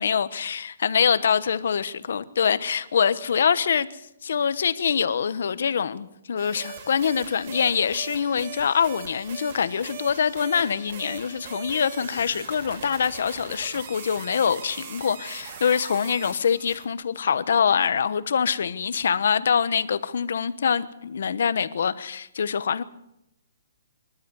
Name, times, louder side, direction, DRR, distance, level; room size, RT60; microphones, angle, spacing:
voice 1, 0.0-3.9 4.2-22.8, left 7 dB, 65° left, 1.2 m, -24 dB
sound 1, 6.4-16.8, right 6 dB, 40° right, 2.8 m, -40 dB
25.5 x 12.5 x 8.1 m
hypercardioid pair, 170°, 0 cm